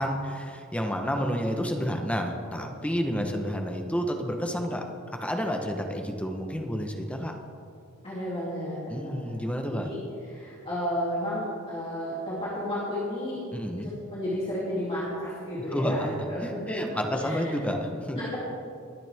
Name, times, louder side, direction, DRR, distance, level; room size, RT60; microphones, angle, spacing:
voice 1, 0.0-4.8 5.2-7.3 8.9-9.9 13.5-13.9 15.7-18.2, equal, 5° left, 3 dB, 0.9 m, -30 dB
voice 2, 8.0-9.3 9.7-10.0 10.3-13.4 13.8-17.5 18.1-18.4, equal, 25° left, -9 dB, 2.7 m, -32 dB
22.5 x 9.3 x 3.5 m, 2.5 s
head